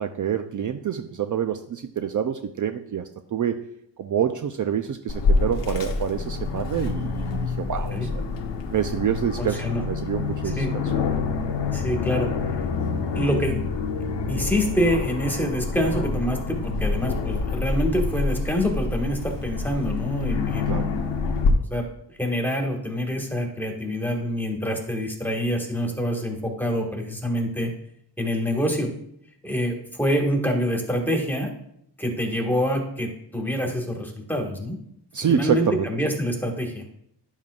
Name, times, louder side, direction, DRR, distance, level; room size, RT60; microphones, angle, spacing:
voice 1, 0.0-3.6 4.0-8.2 8.7-10.7 20.7-20.9 35.1-35.9, right 8 dB, 50° right, 7 dB, 0.5 m, -27 dB
Aircraft, 5.1-21.5, left 4 dB, 85° left, 1.1 m, -27 dB
voice 2, 9.4-9.8 10.4-10.7 11.7-12.3 13.1-13.6 14.3-21.1 21.7-21.8 22.2-27.7 28.2-28.9 29.4-31.5 32.0-34.8 35.3-36.8, equal, 5° left, 1 dB, 1.6 m, -26 dB
10.5 x 7.2 x 2.4 m, 0.71 s
wide cardioid pair, 110°, 42 cm